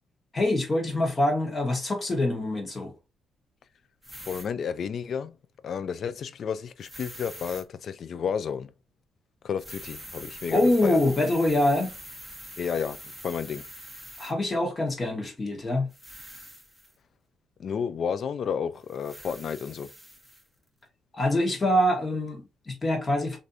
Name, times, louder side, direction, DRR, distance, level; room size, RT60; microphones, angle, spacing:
voice 1, 0.3-2.9 10.5-12.0 14.2-15.9 21.1-23.4, left 1 dB, 30° left, 1.1 m, -25 dB
sound 1, 4.0-4.5 6.8-7.6 9.6-14.3 15.9-16.9 18.8-20.5, equal, ahead, 0.8 m, -44 dB
voice 2, 4.3-5.3 5.6-8.7 9.4-11.0 12.6-13.0 13.2-13.7 17.6-19.9, left 7 dB, 55° left, 0.3 m, -31 dB
3.3 x 2.6 x 2.6 m
cardioid pair, 90°, 0 cm